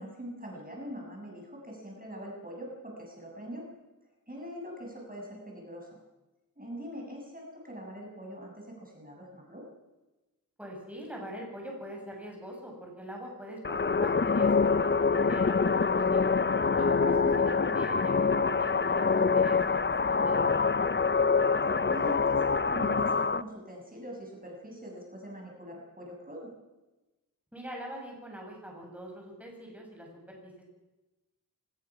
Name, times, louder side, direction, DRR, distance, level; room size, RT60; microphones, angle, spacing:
voice 1, 0.0-3.6 4.3-6.0 6.6-9.6 17.1-17.4 21.9-26.5, equal, 25° right, -1 dB, 6.8 m, -43 dB
voice 2, 10.6-16.3 16.7-20.7 27.5-30.6, equal, 5° right, -1 dB, 6.8 m, -43 dB
sound 1, 13.6-23.4, left 5 dB, 30° left, 0.6 m, -25 dB
24.5 x 20.0 x 6.1 m, 1.1 s
wide cardioid pair, 75°, 35 cm